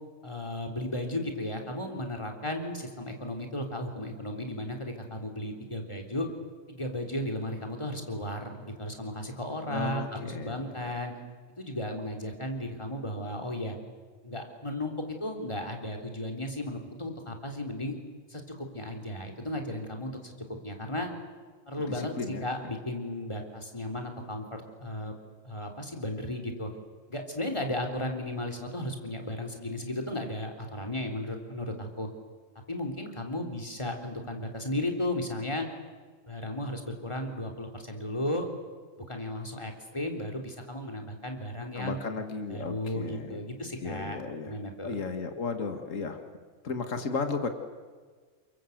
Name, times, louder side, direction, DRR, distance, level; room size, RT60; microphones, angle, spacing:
voice 1, 0.2-6.3 6.7-11.1 11.6-13.8 14.2-14.9 15.2-18.0 18.3-20.3 20.6-21.1 21.7-25.2 25.5-26.7 27.1-32.1 32.7-35.7 36.3-38.5 39.1-42.0 42.5-44.2 44.5-45.0, left 1 dB, 20° left, 3 dB, 3.5 m, -35 dB
voice 2, 9.7-10.9 22.2-22.4 41.8-43.4 43.8-44.6 44.8-46.2 46.6-47.5, left 4 dB, 70° left, 6 dB, 2.3 m, -34 dB
29.0 x 23.5 x 8.1 m, 1.5 s
omnidirectional pair, 1.4 m